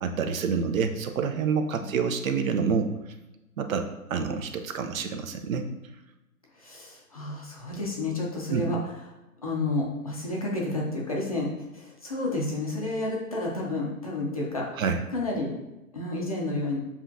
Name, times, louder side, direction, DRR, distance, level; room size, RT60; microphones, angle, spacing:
voice 1, 0.0-2.9 3.6-5.7 8.5-8.6 14.8-15.0, right 6 dB, 65° right, 6 dB, 0.6 m, -27 dB
voice 2, 6.5-8.8 9.4-14.8 15.1-15.5 15.9-16.8, left 2 dB, 25° left, -3 dB, 0.4 m, -30 dB
7.2 x 2.4 x 2.6 m, 0.99 s
hypercardioid pair, 155°, 45 cm